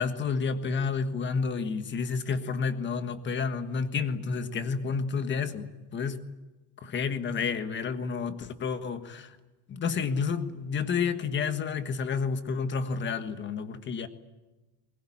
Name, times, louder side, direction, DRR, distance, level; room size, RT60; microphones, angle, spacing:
voice 1, 0.0-6.2 6.8-9.4 9.7-14.1, left 5 dB, 25° left, 10 dB, 1.5 m, -30 dB
21.5 x 20.5 x 10.0 m, 1.1 s
cardioid pair, 160°, 45 cm